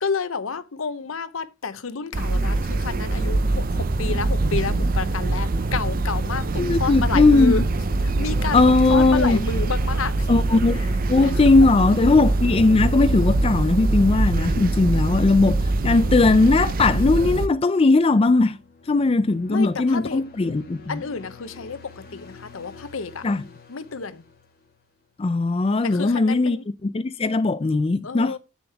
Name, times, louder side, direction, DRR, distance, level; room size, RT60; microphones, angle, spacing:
voice 1, 0.0-7.6 8.0-10.3 10.7-10.9 11.2-11.7 19.5-20.2 20.9-23.3 23.7-24.2 25.8-26.6 28.0-28.4, left 4 dB, 75° left, 0.7 m, -30 dB
sound 1, 2.1-17.5, right 2 dB, 45° right, 0.5 m, -23 dB
voice 2, 6.6-7.5 8.5-9.4 10.3-10.8 11.1-18.6 18.9-21.0 23.2-23.4 25.2-26.6 26.8-28.4, left 3 dB, 25° left, 0.4 m, -19 dB
sound 2, 17.7-25.1, left 4 dB, 45° left, 1.8 m, -48 dB
8.0 x 7.0 x 3.4 m
head